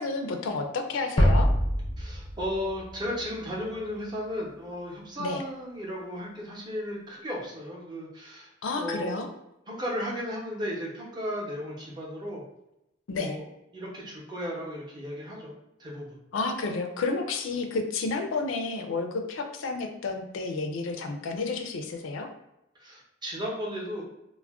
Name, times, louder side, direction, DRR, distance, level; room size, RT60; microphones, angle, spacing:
voice 1, 0.0-1.5 5.2-5.4 8.6-9.3 13.1-13.4 16.3-22.3, left 3 dB, 75° left, 5 dB, 0.4 m, -31 dB
sound 1, 1.2-4.0, equal, 15° left, 0.5 m, -25 dB
voice 2, 2.0-9.3 9.7-12.4 13.1-15.5 15.8-16.2 22.8-24.0, equal, 20° right, -4 dB, 0.7 m, -35 dB
2.4 x 2.1 x 3.4 m, 0.87 s
head